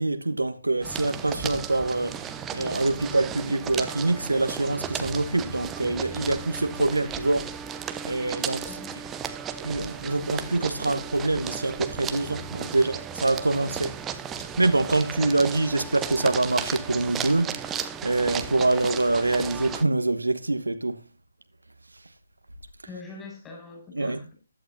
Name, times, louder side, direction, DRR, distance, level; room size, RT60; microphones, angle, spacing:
voice 1, 0.0-7.5 8.0-9.0 9.6-14.0 14.6-21.0 23.9-24.2, right 2 dB, 75° right, 1.2 m, -25 dB
sound 1, 0.8-19.8, right 8 dB, 10° right, 0.8 m, -35 dB
voice 2, 22.8-24.3, left 3 dB, 10° left, 5.6 m, -43 dB
15.0 x 11.5 x 2.6 m
figure-of-eight pair, 145°, 0 cm